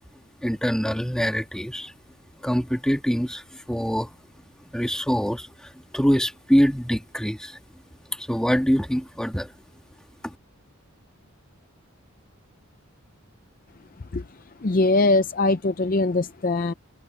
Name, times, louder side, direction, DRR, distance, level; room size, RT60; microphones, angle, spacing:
voice 1, 0.4-1.9 2.4-4.2 4.7-7.6 8.1-9.5 10.2-10.4, equal, 5° left, 1.9 m, -24 dB
voice 2, 14.6-16.7, left 2 dB, 40° left, 0.5 m, -21 dB
head